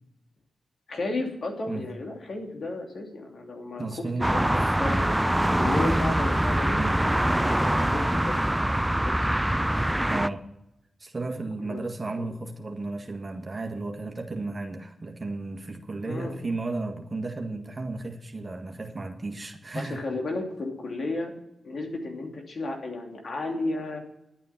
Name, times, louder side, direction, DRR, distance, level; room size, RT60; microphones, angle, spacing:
voice 1, 0.9-3.9 4.2-4.5 4.8-7.0 7.4-9.4 11.6-11.8 12.1-12.3 16.1-16.4 19.7-21.3 21.6-24.0, left 2 dB, 65° left, 2 dB, 2.7 m, -33 dB
voice 2, 3.8-5.2 6.7-7.0 10.1-10.4 11.0-20.0, right 3 dB, 40° right, 3 dB, 1.7 m, -34 dB
sound 1, 4.2-10.3, right 1 dB, 10° right, 0.5 m, -24 dB
11.0 x 9.3 x 5.8 m, 0.84 s
supercardioid pair, 40°, 0 cm